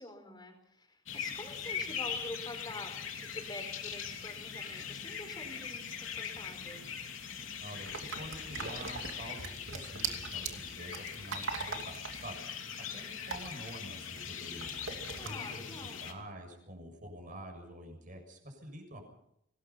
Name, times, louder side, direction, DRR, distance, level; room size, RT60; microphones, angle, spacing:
voice 1, 0.0-6.9 15.2-16.1, left 1 dB, 20° left, 6 dB, 4.6 m, -47 dB
sound 1, 1.1-16.1, left 7 dB, 80° left, 3.1 m, -41 dB
voice 2, 7.6-14.8 15.2-19.1, equal, 40° right, 4 dB, 7.0 m, -47 dB
sound 2, 7.9-14.3 14.6-15.3, right 5 dB, 75° right, 2.8 m, -41 dB
24.5 x 19.0 x 5.8 m, 0.77 s
head